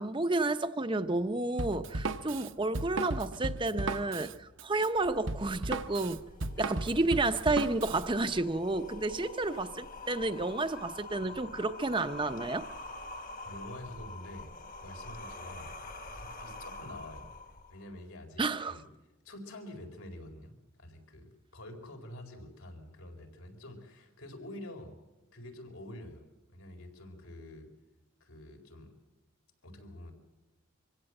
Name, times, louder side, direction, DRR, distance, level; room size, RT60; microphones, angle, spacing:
voice 1, 0.0-6.2 6.6-12.7 18.4-18.8, right 2 dB, 25° right, 10 dB, 0.7 m, -31 dB
Drum kit, 1.6-8.0, right 2 dB, 60° right, 0.9 m, -35 dB
sound 1, 4.9-17.9, left 2 dB, 40° left, 1.2 m, -46 dB
voice 2, 13.4-14.5 14.8-15.7 16.1-17.3 17.7-18.9 19.2-25.0 25.3-26.2 26.5-27.7 28.2-28.9 29.6-30.1, left 1 dB, 90° left, 4 dB, 4.5 m, -47 dB
25.0 x 16.5 x 7.9 m, 1.1 s
head